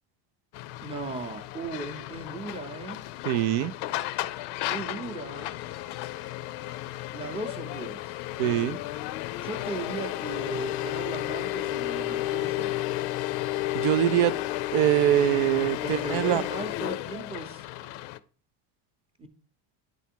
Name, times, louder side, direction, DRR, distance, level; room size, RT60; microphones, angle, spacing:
sound 1, 0.5-18.2, left 15 dB, 55° left, 0.5 m, -33 dB
voice 1, 0.8-3.0 4.6-5.5 7.1-8.2 9.4-12.7 15.8-17.6 19.2-19.3, right 3 dB, 10° right, 0.7 m, -37 dB
voice 2, 3.3-3.7 8.4-8.8 13.7-14.3 14.7-16.4, right 12 dB, 70° right, 0.6 m, -23 dB
9.3 x 3.5 x 4.4 m
cardioid pair, 130°, 49 cm